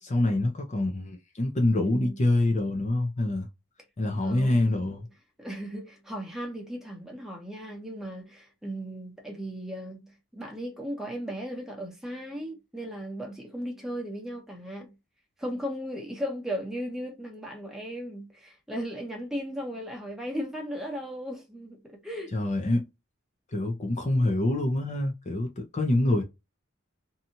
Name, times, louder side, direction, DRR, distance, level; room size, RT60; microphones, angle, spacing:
voice 1, 0.0-3.5 4.0-5.1 22.3-22.8 23.5-26.2, left 1 dB, 35° left, 0.6 m, -26 dB
voice 2, 1.8-2.2 4.2-4.9 5.4-14.9 15.4-22.3, equal, ahead, 0.9 m, -36 dB
2.7 x 2.3 x 2.7 m
head